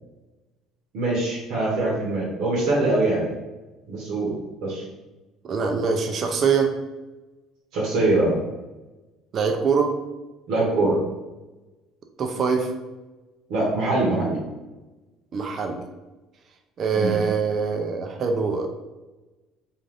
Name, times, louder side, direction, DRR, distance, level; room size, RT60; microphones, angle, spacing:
voice 1, 0.9-3.3 3.9-4.3 4.6-4.8 7.7-8.3 10.5-11.0 13.5-14.4 16.9-17.2, right 2 dB, 75° right, -5 dB, 0.8 m, -23 dB
voice 2, 5.4-6.7 9.3-9.9 12.2-12.7 15.3-15.8 16.8-18.7, right 5 dB, 45° right, 4 dB, 0.4 m, -23 dB
2.4 x 2.4 x 3.2 m, 1.1 s
cardioid pair, 110°, 0 cm